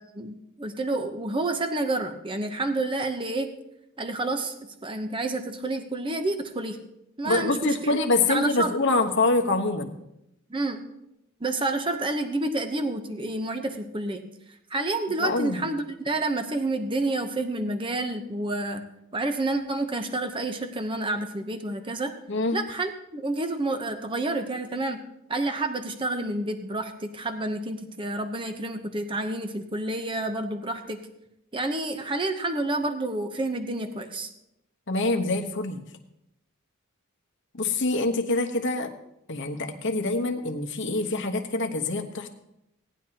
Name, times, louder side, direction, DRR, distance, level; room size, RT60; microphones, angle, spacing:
voice 1, 0.1-3.5 4.0-4.5 4.8-6.8 7.2-8.0 8.3-8.7 10.5-10.8 11.4-14.2 14.7-18.8 19.1-22.1 22.5-25.0 25.3-31.0 31.5-34.3, right 2 dB, 25° right, 6 dB, 0.8 m, -29 dB
voice 2, 7.2-10.0 15.2-15.6 22.3-22.6 34.9-35.8 37.5-38.9 39.3-42.3, left 2 dB, 55° left, 3 dB, 1.2 m, -25 dB
18.0 x 10.0 x 2.9 m, 0.84 s
head